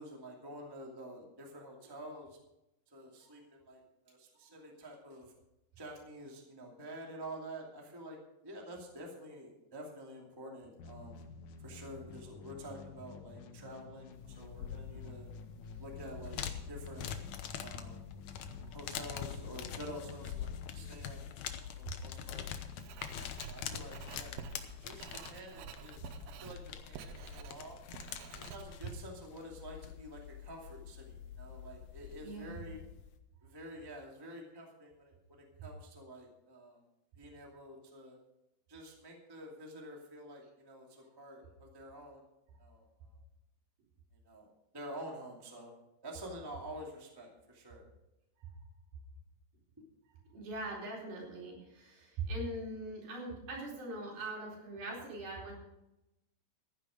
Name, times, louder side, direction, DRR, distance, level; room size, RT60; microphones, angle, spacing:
voice 1, 0.0-2.4 2.9-5.3 5.8-8.2 8.4-11.2 11.6-15.3 15.8-16.4 16.7-17.1 17.6-18.0 18.7-21.2 21.6-22.5 23.1-24.3 24.8-27.8 28.3-32.8 33.4-36.8 37.2-38.2 38.7-42.2 42.6-42.8 44.2-45.7 46.0-47.8, right 1 dB, 10° right, -1 dB, 1.5 m, -48 dB
sound 1, 10.8-21.7, left 4 dB, 75° left, 1.7 m, -51 dB
sound 2, 14.1-33.2, left 9 dB, 90° left, 1.6 m, -45 dB
Writing, 22.8-28.9, right 9 dB, 90° right, 2.9 m, -50 dB
voice 2, 32.2-32.6 48.4-48.5 50.3-55.5, right 2 dB, 65° right, -3 dB, 5.8 m, -42 dB
15.0 x 10.0 x 5.1 m, 0.93 s
omnidirectional pair, 4.6 m